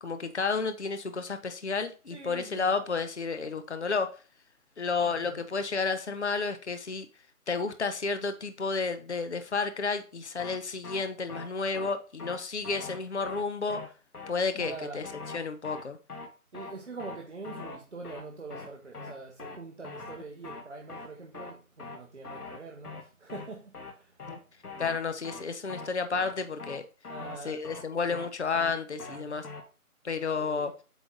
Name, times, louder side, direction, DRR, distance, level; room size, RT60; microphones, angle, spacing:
voice 1, 0.0-4.2 4.8-7.1 7.5-13.8 14.3-15.1 15.3-16.0 24.3-24.4 24.8-26.8 27.4-29.5 30.0-30.7, left 4 dB, 50° left, 0.7 m, -31 dB
voice 2, 2.1-2.7 5.0-5.4 14.5-15.1 16.5-24.1 27.1-27.6 29.0-29.4 30.4-30.7, right 3 dB, 50° right, 1.0 m, -44 dB
Cinnamon Rhythm Synth Chops, 10.4-10.6 10.8-11.0 11.3-11.5 11.7-11.9 12.2-12.4 12.6-13.0 13.2-13.4 13.7-13.9 14.1-14.3 14.6-14.8 15.0-15.4 15.6-15.8 16.1-16.3 16.5-16.7 17.0-17.2 17.4-17.8 18.0-18.2 18.5-18.7 18.9-19.1 19.4-19.6 19.8-20.2 20.4-20.6 20.9-21.1 21.3-21.5 21.8-22.0 22.2-22.6 22.8-23.0 23.3-23.5 23.7-23.9 24.2-24.4 24.6-25.0 25.2-25.4 25.7-25.9 26.1-26.3 26.6-26.8 27.0-27.4 27.6-27.8 28.1-28.3 28.5-28.7 29.0-29.2 29.4-29.6, left 4 dB, 85° left, 1.6 m, -42 dB
8.0 x 3.2 x 3.8 m
figure-of-eight pair, 175°, 44 cm